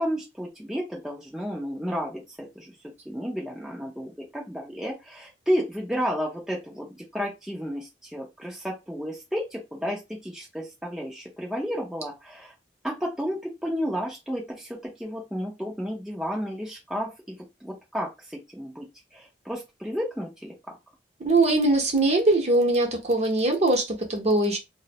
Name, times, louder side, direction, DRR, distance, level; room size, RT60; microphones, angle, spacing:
voice 1, 0.0-2.7 3.1-12.5 12.8-18.9 19.1-20.8, equal, 5° right, 0.4 m, -32 dB
voice 2, 21.2-24.6, right 2 dB, 35° right, 0.7 m, -22 dB
2.3 x 2.0 x 2.8 m
head